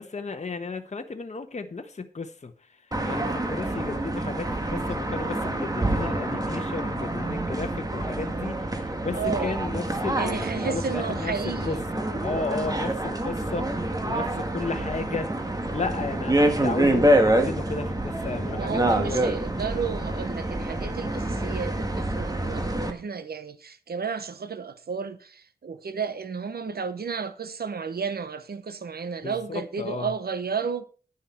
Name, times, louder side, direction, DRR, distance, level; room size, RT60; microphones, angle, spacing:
voice 1, 0.0-15.3 15.7-19.2 29.2-30.1, left 4 dB, 45° left, 1.1 m, -34 dB
sound 1, 2.9-22.9, right 1 dB, 25° right, 1.7 m, -27 dB
voice 2, 9.1-9.6 10.1-11.8 14.7-14.9 18.6-30.8, right 5 dB, 75° right, 1.0 m, -32 dB
10.0 x 9.7 x 4.5 m
wide cardioid pair, 95°, 16 cm